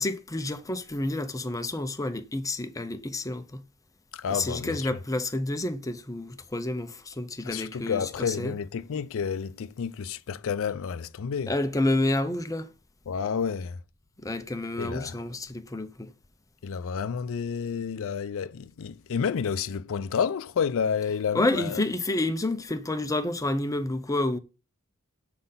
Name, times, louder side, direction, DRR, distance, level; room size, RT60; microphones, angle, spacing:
voice 1, 0.0-3.6 4.3-8.5 11.5-12.7 14.2-16.1 21.3-24.4, left 2 dB, 15° left, 0.6 m, -29 dB
voice 2, 4.1-4.9 7.4-11.5 13.1-13.8 14.8-15.2 16.6-21.8, left 6 dB, 65° left, 0.4 m, -30 dB
6.5 x 4.0 x 5.6 m
head